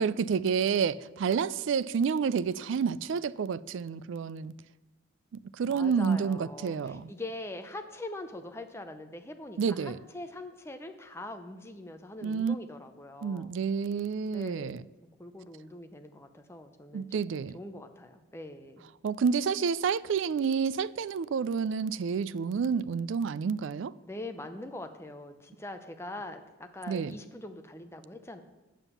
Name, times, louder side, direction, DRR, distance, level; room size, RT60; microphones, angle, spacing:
voice 1, 0.0-4.5 5.6-7.1 9.6-10.0 12.2-12.6 13.2-14.8 16.9-17.6 19.0-23.9 26.9-27.1, right 6 dB, 65° right, 0.3 m, -29 dB
voice 2, 5.7-13.5 14.3-14.8 15.2-18.9 24.0-28.4, left 2 dB, 10° left, 0.6 m, -43 dB
9.0 x 7.2 x 6.9 m
head